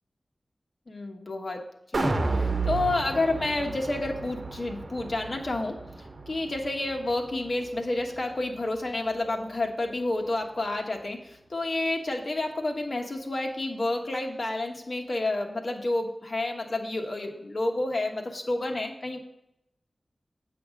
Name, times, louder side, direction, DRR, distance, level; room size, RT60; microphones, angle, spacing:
voice 1, 0.9-1.6 1.9-5.8 6.3-19.2, left 2 dB, 60° left, 2 dB, 1.3 m, -30 dB
sound 1, 1.9-8.2 8.5-8.6, right 3 dB, 60° right, 0.9 m, -32 dB
8.4 x 5.8 x 5.0 m, 0.81 s
wide cardioid pair, 55°, 0 cm